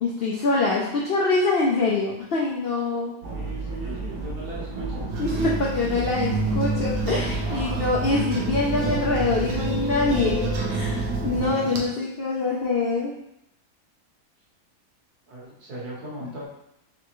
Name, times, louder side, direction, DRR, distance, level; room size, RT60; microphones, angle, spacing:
voice 1, 0.0-3.2 5.2-13.1 16.2-16.3, left 3 dB, 75° left, -3 dB, 0.5 m, -25 dB
sound 1, 3.2-11.5, right 1 dB, 50° right, 1.1 m, -32 dB
voice 2, 3.3-5.1 15.3-16.5, right 1 dB, 70° right, -5 dB, 1.8 m, -38 dB
sound 2, 5.1-11.9, right 4 dB, 90° right, 1.3 m, -29 dB
sound 3, 6.1-11.2 11.6-12.0, left 10 dB, 50° left, 0.9 m, -39 dB
3.9 x 3.3 x 3.0 m, 0.79 s
omnidirectional pair, 1.7 m